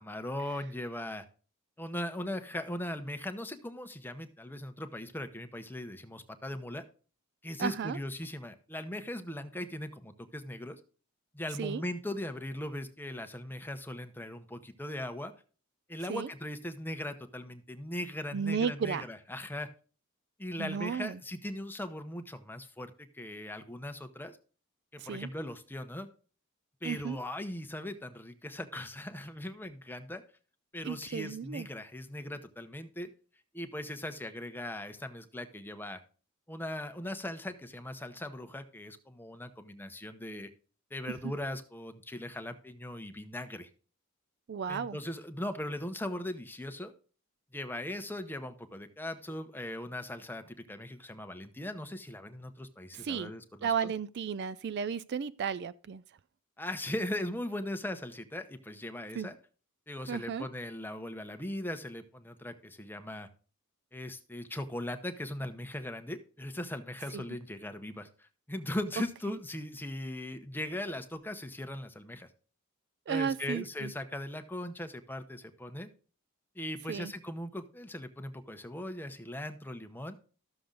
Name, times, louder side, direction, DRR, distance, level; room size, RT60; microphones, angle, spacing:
voice 1, 0.1-1.3 1.8-6.8 7.4-10.8 11.3-15.3 15.9-19.7 20.4-24.4 24.9-26.1 26.8-30.2 30.7-33.1 33.5-36.0 36.5-40.5 40.9-43.7 44.7-46.9 47.5-53.9 56.6-59.4 59.9-63.3 63.9-72.3 73.1-75.9 76.5-80.2, left 1 dB, 10° left, 0.9 m, -39 dB
voice 2, 7.6-8.0 11.6-11.8 16.1-16.3 18.3-19.0 20.6-21.2 25.0-25.3 26.8-27.2 30.8-31.7 44.5-45.0 52.9-53.3 53.6-56.0 59.2-59.3 60.1-60.5 67.1-67.2 73.1-73.9 76.9-77.1, right 6 dB, 50° right, 0.4 m, -34 dB
13.0 x 6.9 x 3.9 m
head